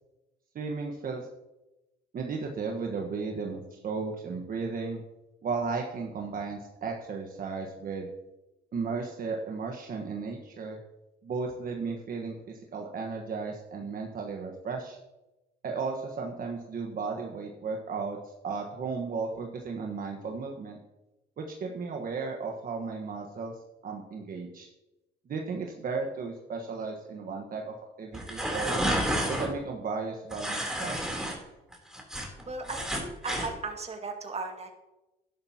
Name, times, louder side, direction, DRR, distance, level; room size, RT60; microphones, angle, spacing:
voice 1, 0.5-1.3 2.1-5.0 5.4-8.1 8.7-10.8 11.2-15.0 15.6-20.8 21.4-24.7 25.3-28.8 29.3-31.0 31.2-31.4, right 4 dB, 50° right, 1 dB, 1.4 m, -35 dB
sound 1, 28.1-29.5 30.3-31.3 31.7-33.5, equal, 5° right, 3.4 m, -30 dB
voice 2, 32.5-34.7, right 3 dB, 35° right, 3 dB, 2.1 m, -36 dB
12.0 x 11.0 x 2.9 m, 1.0 s
cardioid pair, 85°, 18 cm